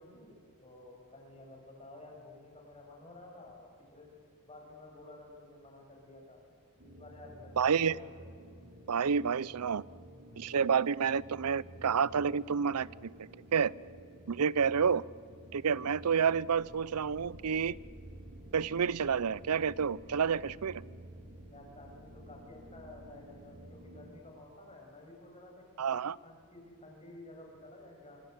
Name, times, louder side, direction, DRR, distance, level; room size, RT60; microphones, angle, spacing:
voice 1, 0.0-4.1 4.4-6.4 6.8-8.1 21.5-28.2, left 2 dB, 30° left, 1 dB, 6.6 m, -52 dB
sound 1, 6.8-24.2, right 1 dB, 55° right, 6.6 m, -52 dB
voice 2, 7.6-8.0 8.9-9.8 10.4-13.7 14.3-15.0 15.5-17.8 18.5-20.8 25.8-26.2, right 6 dB, 85° right, 22 dB, 0.6 m, -29 dB
sound 2, 16.5-24.3, right 1 dB, 15° right, 7.8 m, -57 dB
26.0 x 24.5 x 8.1 m, 2.3 s
head